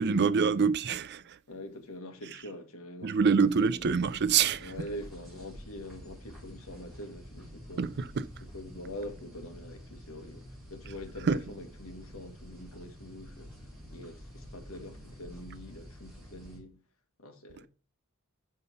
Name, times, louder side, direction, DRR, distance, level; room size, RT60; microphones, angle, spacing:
voice 1, 0.0-1.4 3.0-4.7 7.8-8.2 11.3-11.4, right 5 dB, 50° right, 0.5 m, -26 dB
voice 2, 1.5-3.9 4.6-7.9 8.4-16.8 17.2-17.7, left 1 dB, 75° left, 1.5 m, -44 dB
sound 1, 3.4-16.6, equal, ahead, 4.4 m, -49 dB
5.7 x 5.5 x 6.8 m
head